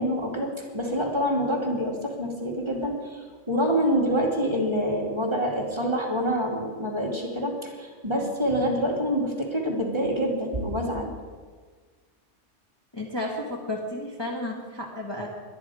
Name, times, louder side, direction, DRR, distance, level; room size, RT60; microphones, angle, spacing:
voice 1, 0.0-11.1, equal, 20° right, -2 dB, 2.5 m, -26 dB
voice 2, 12.9-15.3, left 1 dB, 20° left, -2 dB, 1.7 m, -32 dB
22.0 x 10.5 x 4.9 m, 1.5 s
omnidirectional pair, 1.3 m